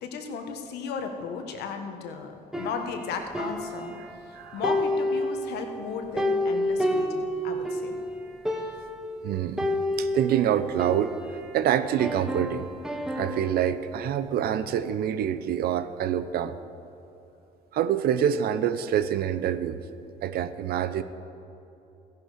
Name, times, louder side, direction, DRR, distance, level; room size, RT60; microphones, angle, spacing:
voice 1, 0.0-8.0, left 5 dB, 75° left, 5 dB, 1.4 m, -35 dB
sound 1, 2.5-4.3 4.6-7.9 8.2-8.3 8.4-9.1 9.6-11.6 12.0-13.7, left 1 dB, 5° right, 1.1 m, -30 dB
voice 2, 9.2-9.7 10.0-11.1 11.5-12.7 13.2-16.5 17.7-19.8 20.2-21.0, right 10 dB, 65° right, 13 dB, 0.7 m, -26 dB
15.0 x 10.5 x 5.1 m, 2.8 s
cardioid pair, 110°, 17 cm